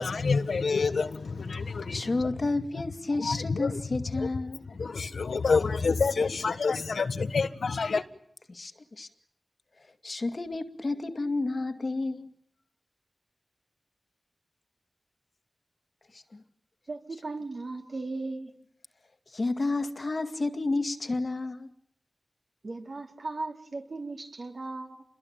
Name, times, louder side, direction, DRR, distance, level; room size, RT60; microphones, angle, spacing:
voice 1, 0.0-2.4 3.1-3.8 4.1-4.3 4.7-8.0, left 4 dB, 90° left, 1.5 m, -28 dB
voice 2, 1.9-4.6 8.5-8.7 9.0-9.1 10.0-12.3 16.3-16.4 19.3-21.7, left 2 dB, 55° left, 2.1 m, -30 dB
voice 3, 16.9-18.5 22.6-25.0, right 3 dB, 65° right, 4.5 m, -37 dB
28.5 x 22.0 x 8.9 m
wide cardioid pair, 65°, 0 cm